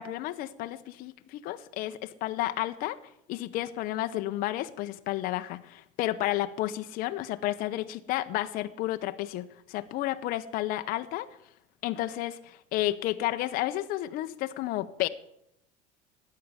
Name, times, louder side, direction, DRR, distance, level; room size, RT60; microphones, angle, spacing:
voice 1, 0.0-3.0 3.3-11.3 11.8-15.1, left 15 dB, 60° left, 9 dB, 0.9 m, -31 dB
13.0 x 9.6 x 9.8 m, 0.78 s
cardioid pair, 135°, 17 cm